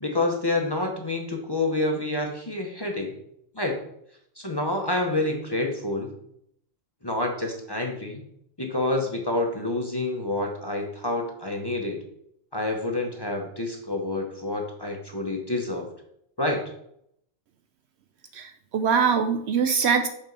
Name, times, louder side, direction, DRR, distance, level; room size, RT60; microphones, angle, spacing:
voice 1, 0.0-3.1 3.5-3.8 4.4-6.1 7.0-8.2 8.6-12.0 12.5-15.9 16.4-16.6, left 2 dB, 25° left, 1 dB, 0.8 m, -28 dB
voice 2, 18.3-20.1, right 6 dB, 65° right, 8 dB, 0.7 m, -23 dB
6.1 x 4.2 x 5.3 m, 0.73 s
omnidirectional pair, 1.3 m